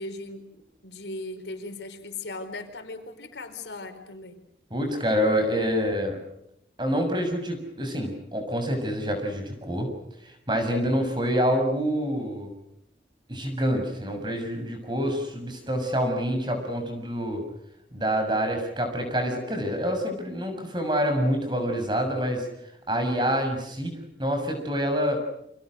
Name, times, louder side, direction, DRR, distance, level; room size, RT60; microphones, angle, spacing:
voice 1, 0.0-4.4, left 2 dB, 85° left, 7 dB, 4.8 m, -38 dB
voice 2, 4.7-6.2 6.8-9.9 10.2-12.5 13.3-17.4 17.9-22.5 22.9-25.2, equal, 25° right, 6 dB, 6.7 m, -27 dB
29.5 x 27.0 x 6.5 m, 0.77 s
head